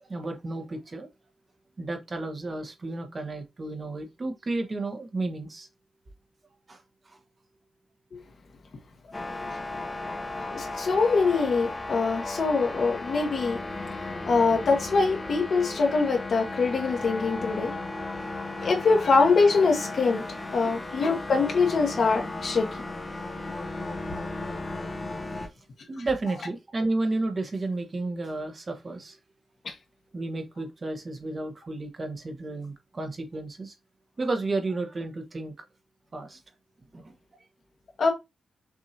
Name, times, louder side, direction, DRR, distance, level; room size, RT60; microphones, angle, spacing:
voice 1, 0.1-1.1 1.8-5.7 6.7-6.8 7.1-7.2 10.2-10.3 20.6-20.8 25.9-29.2 30.1-33.7 34.2-35.5 36.1-36.4 36.9-37.1, right 2 dB, 35° right, 1.1 m, -32 dB
sound 1, 9.1-25.5, left 2 dB, 25° left, 0.9 m, -35 dB
voice 2, 10.5-13.6 14.3-17.7 18.6-20.2 20.5-22.7 29.6-29.7 38.0-38.1, left 4 dB, 65° left, 1.2 m, -23 dB
6.2 x 2.7 x 2.8 m
wide cardioid pair, 105°, 0 cm